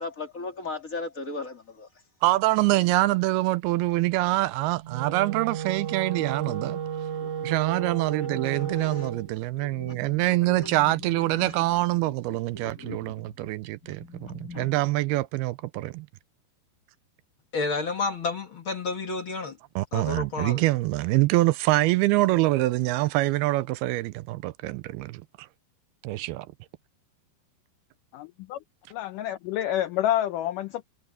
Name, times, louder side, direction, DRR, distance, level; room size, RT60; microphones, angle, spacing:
voice 1, 0.0-1.9 6.2-6.8 7.2-7.6 7.9-9.1 9.5-11.8 12.6-13.1 13.8-14.7, left 2 dB, 25° left, 2.1 m, -39 dB
voice 2, 2.2-6.8 7.4-16.1 19.8-25.5 26.0-26.5, right 18 dB, 80° right, 2.5 m, -25 dB
Wind instrument woodwind instrument, 4.8-9.3, right 8 dB, 55° right, 1.8 m, -33 dB
voice 3, 17.5-19.6 19.9-20.6, left 4 dB, 40° left, 2.0 m, -30 dB
voice 4, 28.1-28.6 29.0-30.9, left 12 dB, 90° left, 1.8 m, -28 dB
omnidirectional pair, 4.6 m